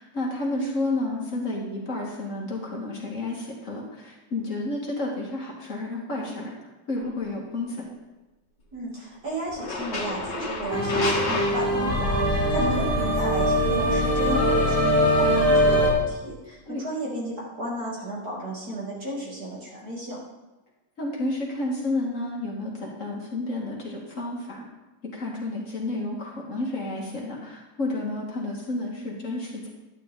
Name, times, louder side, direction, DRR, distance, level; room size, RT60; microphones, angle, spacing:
voice 1, 0.0-6.5 6.9-7.8 12.6-12.8 16.7-16.8 21.0-24.7 25.1-29.7, left 2 dB, 45° left, -3 dB, 2.2 m, -31 dB
sound 1, 6.9-7.2 9.5-12.3, left 2 dB, 75° left, 2.1 m, -31 dB
voice 2, 8.7-20.2, right 1 dB, 55° right, -5 dB, 3.3 m, -33 dB
sound 2, 10.7-15.9, equal, 10° left, 2.2 m, -22 dB
11.5 x 9.8 x 3.8 m, 1.1 s
omnidirectional pair, 2.0 m